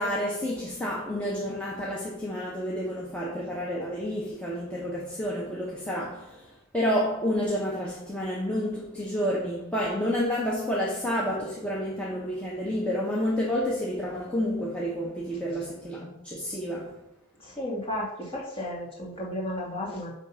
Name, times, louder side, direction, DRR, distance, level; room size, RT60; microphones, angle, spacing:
voice 1, 0.0-17.0, equal, 5° left, 0.9 m, -30 dB
voice 2, 17.4-20.1, left 1 dB, 25° left, 2.4 m, -33 dB
9.0 x 3.6 x 5.7 m
head